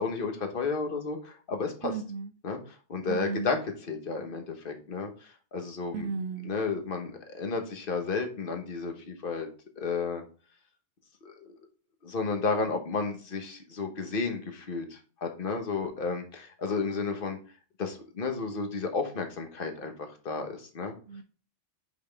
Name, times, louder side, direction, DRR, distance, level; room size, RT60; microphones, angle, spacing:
voice 1, 0.0-1.9 2.4-2.6 2.9-3.6 3.9-6.1 6.4-9.5 9.8-10.2 11.2-11.5 12.0-17.4 17.8-19.9 20.2-20.9, left 4 dB, 50° left, 1.3 m, -32 dB
voice 2, 1.8-2.3 3.1-3.5 5.9-6.6 21.1-21.2, right 5 dB, 75° right, 0.8 m, -34 dB
5.9 x 5.4 x 3.4 m
omnidirectional pair, 1.2 m